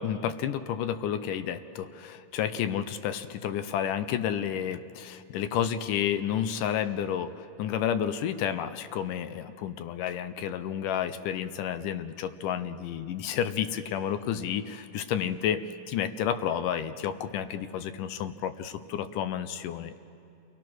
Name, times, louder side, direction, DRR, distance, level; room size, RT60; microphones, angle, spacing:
voice 1, 0.0-20.0, left 9 dB, 75° left, 11 dB, 2.2 m, -31 dB
29.5 x 21.0 x 6.2 m, 2.7 s
omnidirectional pair, 4.0 m